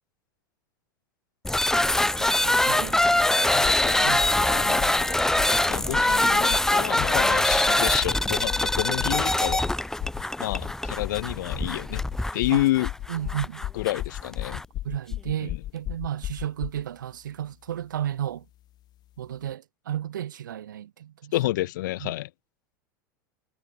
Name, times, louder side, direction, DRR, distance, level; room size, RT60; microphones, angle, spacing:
sound 1, 1.4-14.7, left 1 dB, 5° left, 1.0 m, -23 dB
voice 1, 2.2-3.5 4.0-4.2 12.5-12.6 13.1-13.7 14.8-18.4 19.2-21.3 22.0-22.1, right 10 dB, 90° right, 1.1 m, -33 dB
voice 2, 3.4-5.4 5.7-9.7 10.4-12.0 12.3-12.9 13.7-14.6 15.4-15.6 21.3-22.3, left 16 dB, 75° left, 2.8 m, -29 dB
sound 2, 3.6-3.9 4.2-4.5 4.8-5.0 5.4-5.6 5.9-6.2 6.5-6.7 7.0-7.2 7.5-7.7 8.0-8.2 8.5-8.7 9.0-9.2 9.5-9.7 10.0-10.2 10.5-10.7 11.0-11.2 11.5-16.8, left 14 dB, 45° left, 3.1 m, -34 dB
hypercardioid pair, 105°, 10 cm